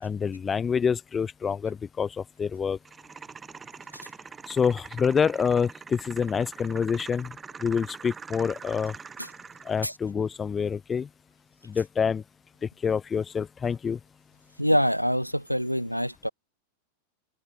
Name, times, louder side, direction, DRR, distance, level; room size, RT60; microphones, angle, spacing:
voice 1, 0.0-2.8 4.5-7.3 7.6-8.9 9.6-11.1 11.6-12.2 12.8-14.0, left 6 dB, 20° left, 1.3 m, -27 dB
sound 1, 2.9-9.8, right 5 dB, 15° right, 4.4 m, -44 dB
voice 2, 14.6-16.3, equal, 90° right, 0.4 m, -25 dB
figure-of-eight pair, 90°, 0 cm